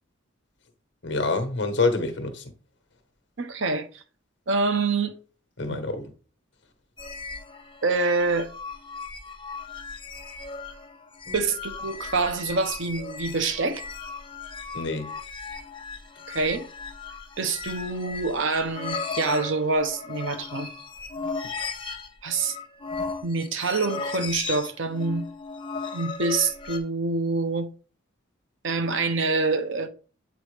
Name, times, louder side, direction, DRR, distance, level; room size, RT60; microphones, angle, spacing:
voice 1, 1.0-2.5 5.6-6.1 11.3-11.4 14.7-15.1, left 3 dB, 60° left, 1.1 m, -27 dB
voice 2, 3.4-4.0 4.5-5.2 5.7-5.8 7.8-8.5 11.3-13.8 16.3-16.7 17.4-20.7 22.2-22.6 23.2-25.3 25.9-27.7 28.6-29.9, right 3 dB, 65° right, 0.8 m, -26 dB
sound 1, 7.0-26.8, left 4 dB, 25° left, 0.6 m, -36 dB
8.0 x 4.0 x 3.3 m
head